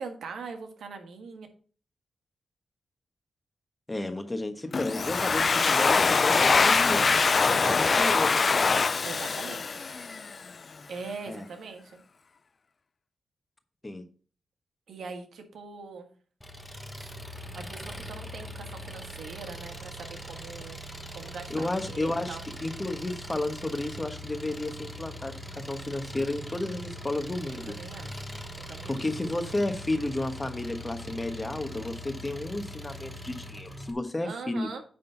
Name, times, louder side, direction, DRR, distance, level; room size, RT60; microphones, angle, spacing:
voice 1, 0.0-1.5 5.3-5.5 7.5-8.2 9.0-9.7 10.9-12.0 14.9-16.1 17.0-17.1 17.5-20.8 21.1-22.4 27.5-28.2 28.7-29.0 34.2-34.8, right 4 dB, 80° right, 5 dB, 1.5 m, -41 dB
voice 2, 3.9-7.0 7.6-8.3 11.3-11.4 13.8-14.0 21.5-25.4 25.7-27.6 28.8-34.7, left 2 dB, 20° left, 8 dB, 1.2 m, -32 dB
Domestic sounds home sounds, 4.7-10.4, left 4 dB, 45° left, 0.3 m, -23 dB
Engine, 16.4-33.9, equal, 5° left, 1.2 m, -41 dB
9.4 x 3.8 x 5.8 m, 0.41 s
cardioid pair, 80°, 0 cm